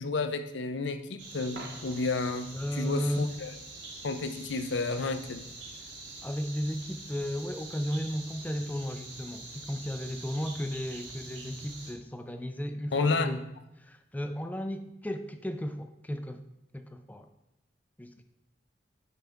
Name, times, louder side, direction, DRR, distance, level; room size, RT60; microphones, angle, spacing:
voice 1, 0.0-3.6 4.0-5.4 12.9-13.4, left 3 dB, 80° left, 9 dB, 0.6 m, -31 dB
sound 1, 1.2-11.9, right 2 dB, 90° right, 2.7 m, -45 dB
Coin (dropping), 1.5-2.3 8.4-8.6, right 2 dB, 65° right, 1.0 m, -46 dB
voice 2, 2.5-3.3 5.7-5.9 6.2-13.4 13.8-16.4 16.7-17.3 18.0-18.2, equal, 10° left, 8 dB, 0.4 m, -34 dB
9.0 x 5.7 x 3.5 m, 0.87 s
head